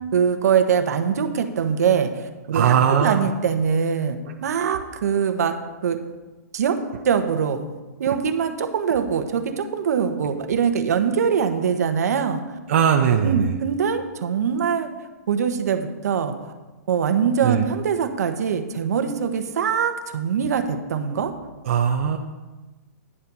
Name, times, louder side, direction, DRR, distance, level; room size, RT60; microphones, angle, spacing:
voice 1, 0.1-2.1 2.5-2.7 3.0-5.5 5.8-6.0 6.5-6.8 7.0-7.6 8.0-12.4 13.2-14.9 15.3-16.3 16.9-21.3, right 7 dB, 65° right, 7 dB, 1.2 m, -22 dB
voice 2, 2.5-3.3 12.7-13.5 17.4-17.6 21.7-22.2, right 8 dB, 45° right, 2 dB, 0.7 m, -19 dB
10.0 x 7.3 x 5.5 m, 1.2 s
hypercardioid pair, 170°, 9 cm